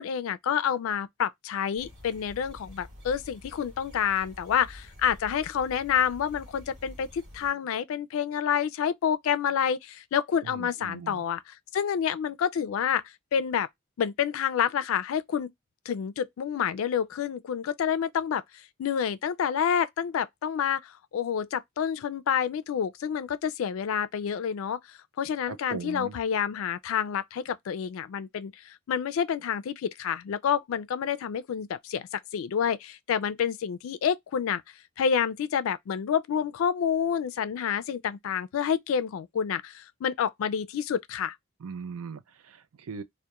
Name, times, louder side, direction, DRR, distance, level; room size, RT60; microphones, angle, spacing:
voice 1, 0.0-13.0 13.3-13.7 14.0-15.5 15.9-34.6 35.0-41.4, left 8 dB, 70° left, 0.3 m, -28 dB
sound 1, 1.8-7.5, left 1 dB, 55° right, 1.2 m, -48 dB
voice 2, 10.4-11.2 25.5-26.2 41.6-43.0, right 5 dB, 85° right, 0.4 m, -39 dB
2.2 x 2.1 x 2.8 m
head